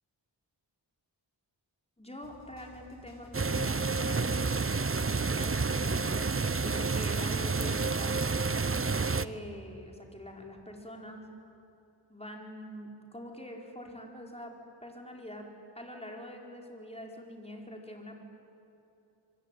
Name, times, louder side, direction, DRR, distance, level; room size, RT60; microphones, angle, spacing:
voice 1, 2.0-4.6 5.2-6.3 6.6-8.2 9.1-11.3 12.1-14.5 14.8-15.5 15.7-18.2, equal, 15° left, 1 dB, 4.8 m, -44 dB
sound 1, 2.2-7.6, left 1 dB, 35° left, 6.1 m, -51 dB
sound 2, 3.3-9.2, right 4 dB, 30° right, 0.7 m, -29 dB
25.0 x 25.0 x 9.2 m, 2.8 s
wide cardioid pair, 60°, 44 cm